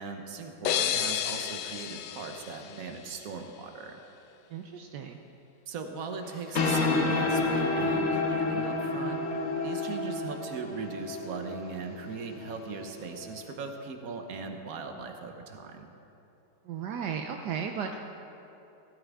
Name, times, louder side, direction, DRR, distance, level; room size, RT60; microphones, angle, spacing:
voice 1, 0.0-4.0 5.7-9.2 9.6-15.9, right 4 dB, 60° right, 5 dB, 1.4 m, -39 dB
sound 1, 0.6-3.4, left 10 dB, 85° left, 1.2 m, -32 dB
voice 2, 4.5-5.2 16.6-18.1, right 7 dB, 75° right, 3 dB, 1.2 m, -35 dB
sound 2, 6.3-13.4, left 3 dB, 50° left, 1.4 m, -30 dB
16.5 x 13.5 x 3.6 m, 2.9 s
omnidirectional pair, 1.8 m